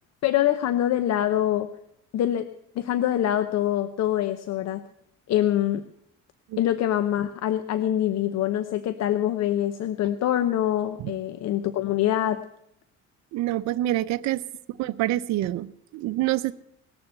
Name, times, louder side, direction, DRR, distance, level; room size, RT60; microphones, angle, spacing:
voice 1, 0.2-1.7 2.1-2.5 2.8-4.8 5.3-5.8 6.6-12.4, left 12 dB, 65° left, 11 dB, 0.9 m, -24 dB
voice 2, 13.3-14.4 14.8-16.5, right 15 dB, 70° right, 11 dB, 0.7 m, -26 dB
19.0 x 7.0 x 8.0 m, 0.75 s
cardioid pair, 110°, 29 cm